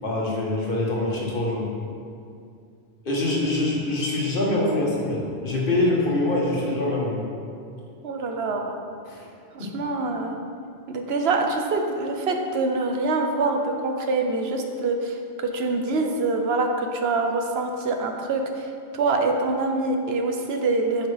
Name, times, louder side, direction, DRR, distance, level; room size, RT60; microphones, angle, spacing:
voice 1, 0.0-1.7 3.0-7.2 9.1-9.3 9.6-9.7, left 2 dB, 55° left, -3 dB, 1.4 m, -24 dB
voice 2, 8.0-8.8 9.5-10.4 10.9-21.1, right 3 dB, 75° right, 3 dB, 1.0 m, -25 dB
8.7 x 5.7 x 3.4 m, 2.4 s
omnidirectional pair, 1.1 m